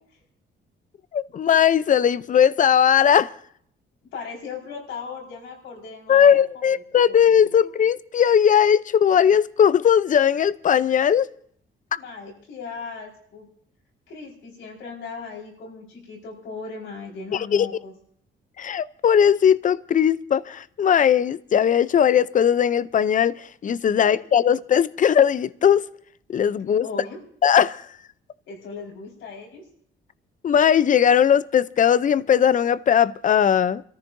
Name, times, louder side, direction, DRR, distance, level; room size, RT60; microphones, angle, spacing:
voice 1, 1.1-3.3 6.1-11.3 11.9-12.0 17.3-17.7 18.6-25.8 26.3-26.9 27.4-27.9 30.4-33.8, left 8 dB, 40° left, 0.5 m, -19 dB
voice 2, 4.1-6.7 7.3-7.6 11.9-13.5 14.1-17.9 26.8-27.2 28.5-29.6, left 4 dB, 85° left, 4.8 m, -37 dB
28.0 x 14.0 x 2.6 m
cardioid pair, 90°, 20 cm